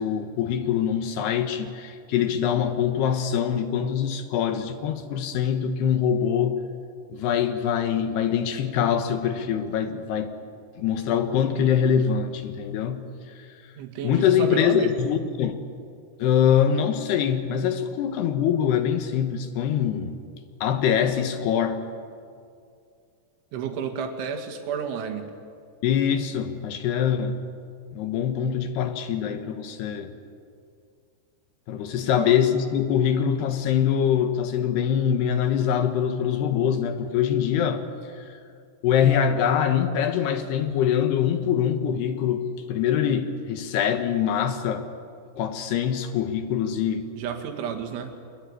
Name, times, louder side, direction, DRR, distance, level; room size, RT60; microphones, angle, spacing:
voice 1, 0.0-6.6 7.1-10.3 10.8-13.6 14.0-15.6 16.2-20.2 20.6-21.8 25.8-27.4 27.9-30.1 31.7-38.4 38.8-44.9 45.4-47.1, left 8 dB, 70° left, 3.1 m, -24 dB
voice 2, 13.8-14.9 23.5-25.2 32.0-32.3 47.2-48.1, right 7 dB, 85° right, 4.4 m, -31 dB
24.5 x 21.5 x 9.8 m
omnidirectional pair, 5.3 m